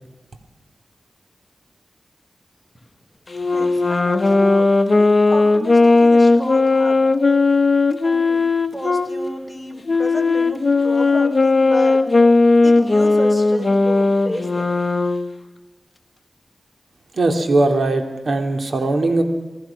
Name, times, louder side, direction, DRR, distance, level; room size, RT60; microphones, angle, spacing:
Wind instrument woodwind instrument, 3.3-9.1 9.9-15.3, left 3 dB, 45° left, 1.4 m, -16 dB
voice 1, 3.4-7.4 8.0-8.4 8.7-12.1 12.6-14.7, left 1 dB, 5° left, 2 dB, 4.9 m, -32 dB
voice 2, 17.1-19.2, right 2 dB, 65° right, 5 dB, 2.9 m, -19 dB
28.5 x 19.0 x 5.9 m, 1.1 s
cardioid pair, 60°, 0 cm